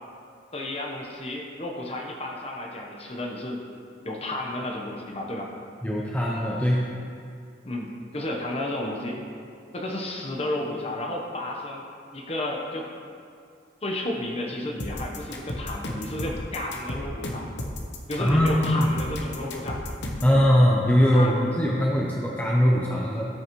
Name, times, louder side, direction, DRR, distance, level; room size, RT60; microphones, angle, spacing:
voice 1, 0.5-3.6 4.0-5.5 7.6-9.2 9.7-11.8 12.1-12.9 13.8-17.5 18.1-19.8 20.3-20.4 21.1-21.4, left 1 dB, 35° left, 0 dB, 1.0 m, -32 dB
voice 2, 5.8-6.9 18.2-18.9 20.2-23.3, equal, 10° left, -4 dB, 0.6 m, -21 dB
sound 1, 14.8-20.4, left 1 dB, 70° left, 1.0 m, -33 dB
14.0 x 6.3 x 3.1 m, 2.3 s
head